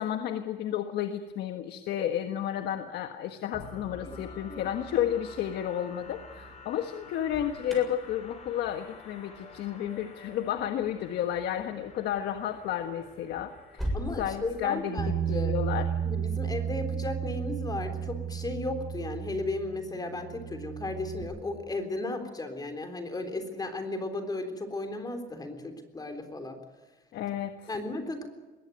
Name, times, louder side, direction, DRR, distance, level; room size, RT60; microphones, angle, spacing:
voice 1, 0.0-15.9 27.1-27.6, left 10 dB, 75° left, 7 dB, 1.5 m, -32 dB
sound 1, 3.5-15.3, left 3 dB, 40° left, 7.6 m, -49 dB
Alarm, 7.0-14.1, equal, ahead, 7.2 m, -42 dB
voice 2, 13.9-15.5 16.0-26.6 27.7-28.3, left 2 dB, 20° left, 6 dB, 3.7 m, -35 dB
Bass guitar, 15.0-21.2, right 8 dB, 35° right, 6.4 m, -33 dB
21.5 x 17.5 x 9.3 m, 1.3 s
cardioid pair, 110°, 17 cm